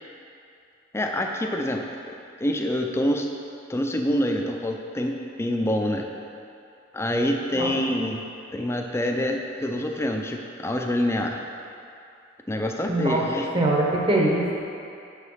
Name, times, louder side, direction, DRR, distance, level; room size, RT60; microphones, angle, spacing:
voice 1, 0.9-2.1 2.4-3.3 3.7-6.1 6.9-8.2 8.5-11.4 12.5-13.5, left 1 dB, 15° left, 2 dB, 0.4 m, -26 dB
voice 2, 12.9-13.2 13.5-14.6, right 1 dB, 25° right, -2 dB, 1.0 m, -22 dB
6.6 x 5.0 x 5.6 m, 2.6 s
head